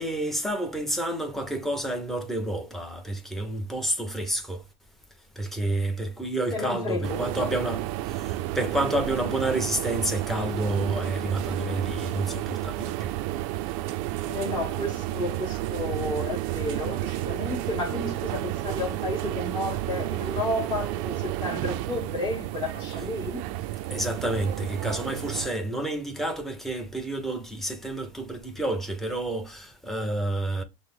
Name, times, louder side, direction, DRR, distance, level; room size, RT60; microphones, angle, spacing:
voice 1, 0.0-4.6 5.4-13.1 23.9-30.6, right 1 dB, ahead, 0.9 m, -29 dB
voice 2, 6.5-7.2 14.3-23.5, left 2 dB, 25° left, 1.7 m, -32 dB
sound 1, 7.0-25.5, right 15 dB, 85° right, 0.4 m, -31 dB
6.0 x 2.1 x 3.7 m
cardioid pair, 130°, 17 cm